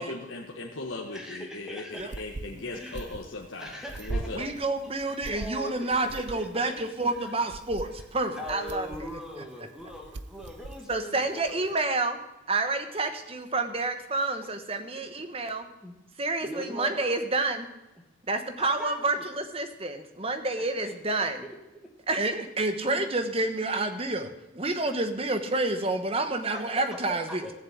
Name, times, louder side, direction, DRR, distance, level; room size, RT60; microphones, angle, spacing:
voice 1, 0.0-4.5, left 2 dB, 85° left, 0 dB, 1.4 m, -38 dB
voice 2, 1.1-2.1 2.7-3.1 3.5-4.6 5.1-7.3 7.8-7.9 8.4-11.8 15.8-15.9 16.4-17.2 18.6-19.3 20.8-21.6 21.8-21.9 23.0-23.1 26.3-27.5, equal, 5° right, 1 dB, 1.8 m, -41 dB
sound 1, 1.9-11.7, right 2 dB, 65° right, 0.6 m, -41 dB
voice 3, 4.3-8.9 10.9-12.2 12.5-15.7 16.2-17.7 18.3-21.4 22.1-24.3 24.5-27.4, right 2 dB, 30° right, 8 dB, 1.2 m, -29 dB
14.0 x 7.3 x 8.6 m, 1.0 s
head